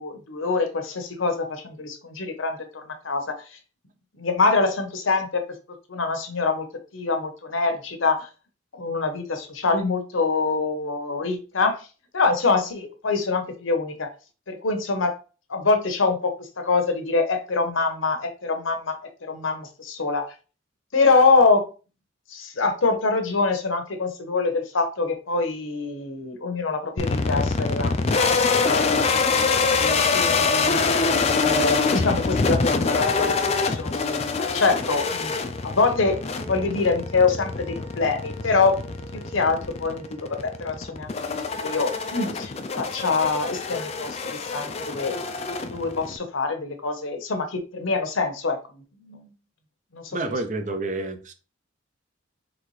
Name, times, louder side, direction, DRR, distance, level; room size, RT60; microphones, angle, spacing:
voice 1, 0.0-3.5 4.2-5.4 5.9-8.3 8.7-11.9 12.1-14.1 14.5-15.2 15.5-20.3 20.9-21.7 22.3-28.8 29.7-30.8 31.3-35.3 35.6-36.2 36.4-38.8 39.1-41.1 41.6-45.2 45.7-49.3 49.9-50.4, left 4 dB, 75° left, 0.9 m, -25 dB
sound 1, 27.0-46.2, left 4 dB, 30° left, 0.4 m, -25 dB
sound 2, 36.0-40.8, right 1 dB, 10° right, 1.2 m, -45 dB
voice 2, 50.1-51.3, right 2 dB, 40° right, 0.6 m, -29 dB
4.0 x 3.3 x 3.2 m
head